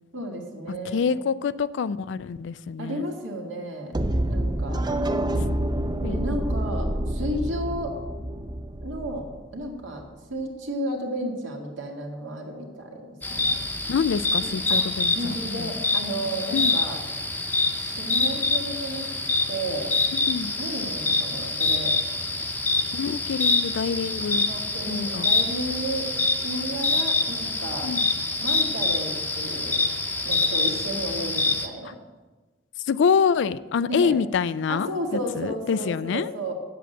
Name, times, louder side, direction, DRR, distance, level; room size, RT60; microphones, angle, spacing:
voice 1, 0.1-1.2 2.8-3.9 4.3-4.8 6.1-8.0 8.8-10.0 10.3-13.7 14.4-14.8 15.2-17.0 17.8-19.1 19.5-19.9 20.6-22.0 24.3-26.1 26.3-27.9 28.4-29.8 30.2-32.0 33.8-34.1 34.7-36.5, right 1 dB, 70° right, 1 dB, 2.0 m, -33 dB
voice 2, 0.8-3.0 6.0-6.3 13.9-15.7 16.5-16.8 20.1-20.5 22.9-24.4 24.9-25.3 27.8-28.1 32.9-34.9 35.3-36.3, left 6 dB, 65° left, 17 dB, 0.4 m, -26 dB
sound 1, 3.9-9.9, right 1 dB, 20° right, 0.5 m, -27 dB
sound 2, 13.2-31.7, left 3 dB, 10° left, 0.8 m, -26 dB
8.0 x 7.6 x 7.8 m, 1.3 s
head